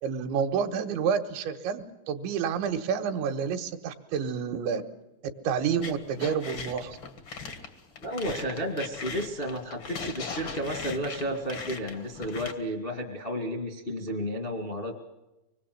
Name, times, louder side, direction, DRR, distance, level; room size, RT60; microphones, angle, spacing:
voice 1, 0.0-4.8 5.5-7.0, right 7 dB, 85° right, 6 dB, 3.6 m, -29 dB
sound 1, 5.8-12.5, left 5 dB, 80° left, 1.1 m, -39 dB
voice 2, 8.0-15.0, equal, 50° left, 2 dB, 0.6 m, -32 dB
25.0 x 20.5 x 7.8 m, 0.99 s
omnidirectional pair, 5.2 m